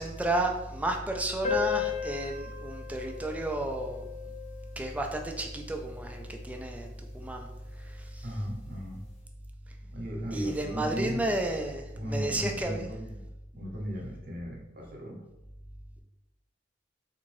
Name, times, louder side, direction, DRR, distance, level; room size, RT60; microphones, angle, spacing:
voice 1, 0.0-4.1 4.8-7.5 7.8-8.2 10.3-12.9, right 1 dB, 10° right, 2 dB, 0.3 m, -32 dB
sound 1, 1.4-6.4, left 8 dB, 40° left, 0.6 m, -36 dB
voice 2, 8.2-9.0 9.9-11.2 11.9-15.2, equal, 55° right, -2 dB, 0.8 m, -36 dB
3.6 x 2.5 x 3.1 m, 0.92 s
head